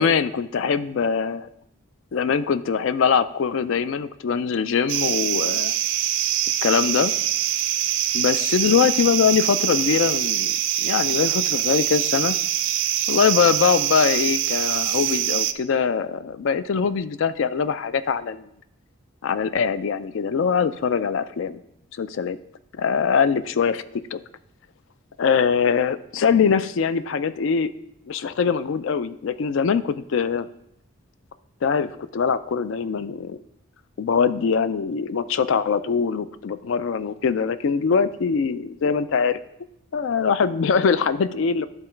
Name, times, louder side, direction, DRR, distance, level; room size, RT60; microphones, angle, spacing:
voice 1, 0.0-1.5 2.1-5.7 6.6-7.1 8.1-10.5 10.8-12.4 13.1-18.5 19.2-21.6 22.0-22.4 22.7-24.2 25.2-27.7 28.1-30.5 31.6-33.4 34.0-39.4 39.9-41.7, left 6 dB, 65° left, 14 dB, 0.3 m, -22 dB
sound 1, 4.9-15.5, right 12 dB, 60° right, 0.4 m, -24 dB
10.5 x 3.9 x 4.4 m, 0.79 s
head